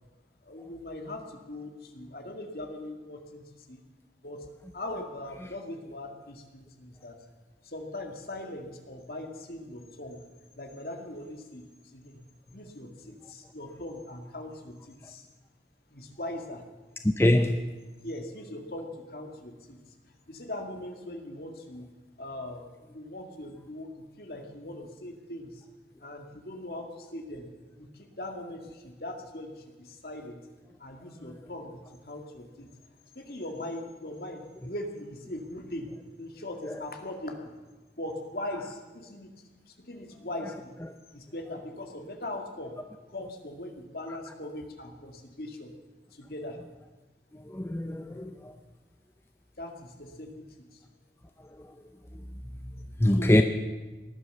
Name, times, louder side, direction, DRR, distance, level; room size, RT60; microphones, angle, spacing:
voice 1, 0.4-3.8 4.2-4.5 4.7-7.2 7.6-10.3 10.6-12.2 12.5-15.3 15.9-16.6 18.0-19.8 20.3-21.9 22.2-22.6 22.9-25.7 26.0-27.5 27.8-30.4 30.8-32.7 33.2-37.5 38.0-39.3 39.7-40.8 41.1-42.7 43.1-45.7 46.1-46.6 49.6-50.8 53.1-53.4, left 1 dB, 55° left, 4 dB, 2.1 m, -40 dB
voice 2, 17.2-17.6 47.5-48.5 53.0-53.4, left 1 dB, 15° left, 6 dB, 0.6 m, -23 dB
18.5 x 11.5 x 6.8 m, 1.2 s
head